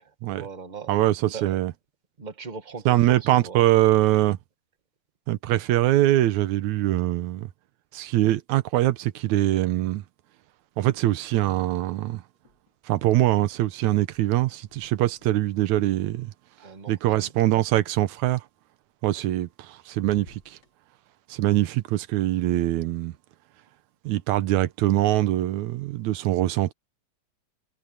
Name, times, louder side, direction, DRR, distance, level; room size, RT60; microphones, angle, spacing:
voice 1, 0.3-0.9 1.3-1.6 2.2-3.6 16.6-17.3, right 5 dB, 30° right, 0.8 m, -40 dB
voice 2, 0.9-1.7 2.9-4.4 5.3-7.5 7.9-10.0 10.8-12.2 12.9-16.3 16.9-18.4 19.0-20.6 21.3-23.1 24.1-26.7, right 15 dB, 80° right, 2.2 m, -23 dB
sound 1, 12.3-13.1 13.3-17.4 19.1-19.7 19.9-20.7, left 1 dB, 35° left, 4.4 m, -55 dB
omnidirectional pair, 3.4 m